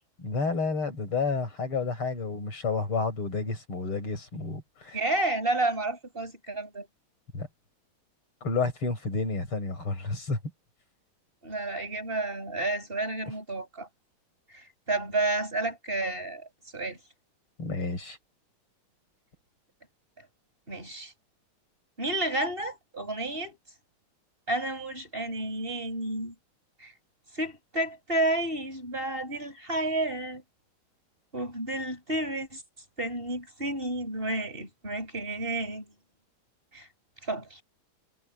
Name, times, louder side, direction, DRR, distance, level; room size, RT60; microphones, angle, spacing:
voice 1, 0.2-5.0 7.3-7.5 8.4-10.4 17.6-18.2, left 4 dB, 85° left, 6.7 m, -30 dB
voice 2, 4.9-6.9 11.4-13.9 14.5-17.0 20.7-21.1 22.0-23.6 24.5-26.3 26.8-26.9 27.3-30.4 31.3-32.6 33.0-35.9 36.7-36.9 37.2-37.6, right 2 dB, 25° right, 7.1 m, -31 dB
omnidirectional pair, 2.3 m